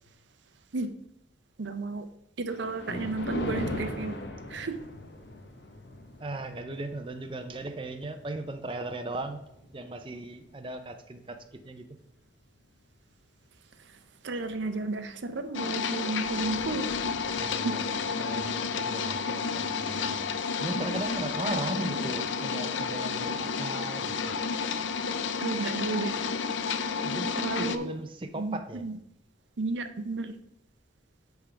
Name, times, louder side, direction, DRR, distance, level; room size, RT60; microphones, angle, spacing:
voice 1, 1.6-2.1 2.4-4.2 4.5-4.8 14.2-16.9 17.5-17.8 25.4-26.2 27.4-27.9 28.3-29.0 29.6-30.4, right 3 dB, 75° right, 9 dB, 0.6 m, -32 dB
Thunder, 2.5-11.0 11.5-11.8 12.5-12.6 12.9-13.0 15.2-15.4 15.7-22.0, left 1 dB, 65° left, 1.0 m, -42 dB
voice 2, 6.2-9.4 9.7-11.9 17.4-17.9 18.2-20.3 20.6-24.3 27.0-28.9, right 2 dB, 25° right, 7 dB, 0.5 m, -37 dB
sound 1, 15.5-27.8, left 5 dB, 85° left, 0.6 m, -31 dB
8.6 x 3.6 x 5.8 m, 0.77 s
head